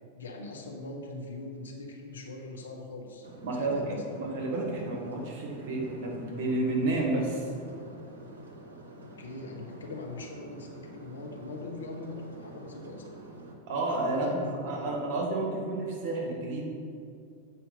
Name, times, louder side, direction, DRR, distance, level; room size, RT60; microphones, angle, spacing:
voice 1, 0.1-4.1 8.9-13.1 14.1-15.2, left 2 dB, 70° left, 1 dB, 1.0 m, -42 dB
sound 1, 3.2-13.6, right 1 dB, 70° right, 1.0 m, -48 dB
voice 2, 3.4-7.5 13.7-16.6, right 2 dB, 45° right, -2 dB, 1.8 m, -31 dB
7.7 x 4.3 x 5.4 m, 2.4 s
figure-of-eight pair, 90°, 0 cm